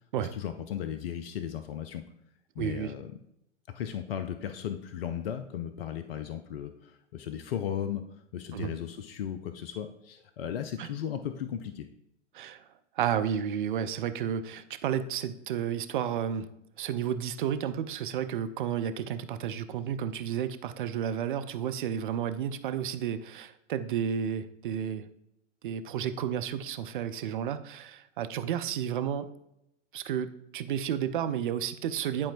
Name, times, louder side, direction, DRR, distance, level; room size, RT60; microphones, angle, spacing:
voice 1, 0.2-2.0 2.6-3.2 3.7-8.0 8.3-11.9, left 9 dB, 50° left, 9 dB, 0.5 m, -36 dB
voice 2, 2.6-2.9 8.5-8.8 10.8-10.9 12.3-12.7 13.0-16.5 16.8-25.1 25.6-29.3 29.9-32.3, right 9 dB, 45° right, 10 dB, 0.5 m, -32 dB
10.5 x 4.3 x 2.5 m, 0.80 s
figure-of-eight pair, 105°, 37 cm